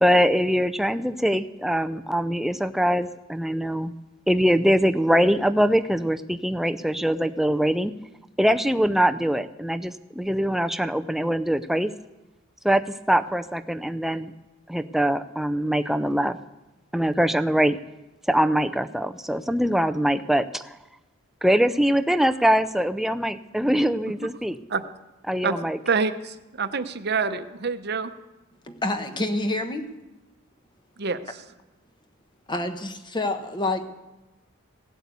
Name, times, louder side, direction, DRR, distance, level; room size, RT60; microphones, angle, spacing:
voice 1, 0.0-3.9 4.3-7.9 8.4-11.9 12.6-14.3 14.7-16.4 16.9-17.8 18.3-20.7 21.4-24.6 25.3-25.8, equal, ahead, 10 dB, 0.4 m, -23 dB
voice 2, 25.9-28.1 31.0-31.2, right 5 dB, 50° right, 10 dB, 0.8 m, -26 dB
voice 3, 28.6-29.9 32.5-33.9, left 2 dB, 20° left, 8 dB, 1.0 m, -27 dB
16.5 x 8.2 x 8.3 m, 1.0 s
head